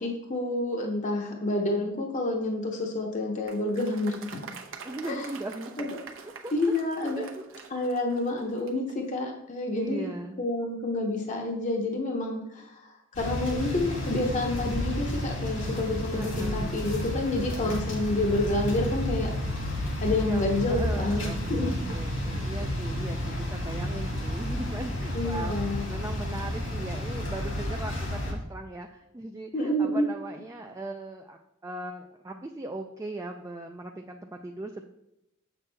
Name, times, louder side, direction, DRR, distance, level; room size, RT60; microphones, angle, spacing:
voice 1, 0.0-4.4 5.1-5.3 5.8-5.9 6.5-7.2 7.7-10.1 10.4-19.3 20.0-21.7 25.1-25.8 29.5-30.1, left 2 dB, 40° left, 1 dB, 0.7 m, -29 dB
Applause, 3.5-9.0, right 5 dB, 70° right, 0.8 m, -45 dB
voice 2, 4.8-6.0 6.4-6.8 7.2-7.6 9.7-10.4 16.1-16.8 17.4-17.9 20.2-25.6 25.9-34.8, right 2 dB, 15° right, 3 dB, 0.3 m, -38 dB
sound 1, 13.1-28.3, left 1 dB, 85° left, 2.2 m, -31 dB
7.5 x 6.0 x 3.3 m, 0.84 s
head